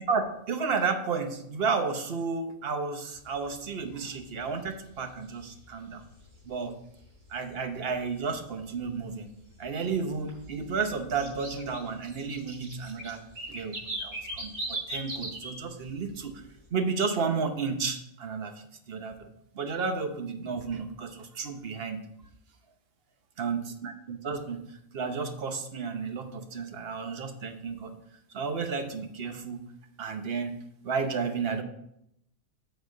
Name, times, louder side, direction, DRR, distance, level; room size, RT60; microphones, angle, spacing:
voice 1, 0.0-6.0 6.5-6.7 7.3-9.3 9.6-13.2 13.5-16.4 16.7-18.5 18.9-19.3 19.5-22.0 23.4-24.6 24.9-27.9 28.3-29.6 30.0-30.5 30.8-31.6, right 5 dB, 50° right, 7 dB, 1.0 m, -32 dB
sound 1, 3.2-3.3 3.6-3.9 4.2-4.6 5.1-6.3 6.6-6.7 7.3-7.4 7.9-8.0 8.3-8.4 8.8-9.6 9.9-15.6 15.8-16.3, right 1 dB, 90° right, 3.7 m, -38 dB
8.0 x 4.3 x 6.5 m, 0.77 s
omnidirectional pair, 1.4 m